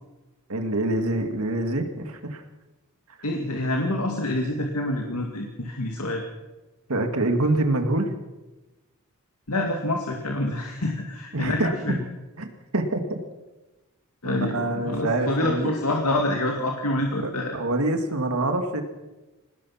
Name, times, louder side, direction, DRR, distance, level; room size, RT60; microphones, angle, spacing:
voice 1, 0.5-2.4 6.9-8.1 11.3-11.7 12.4-12.5 12.7-13.2 14.2-15.7 17.2-18.8, right 2 dB, 75° right, 6 dB, 2.4 m, -25 dB
voice 2, 3.2-6.2 9.5-12.0 14.2-17.5, left 1 dB, 85° left, 2 dB, 2.2 m, -27 dB
24.0 x 19.5 x 5.8 m, 1.1 s
head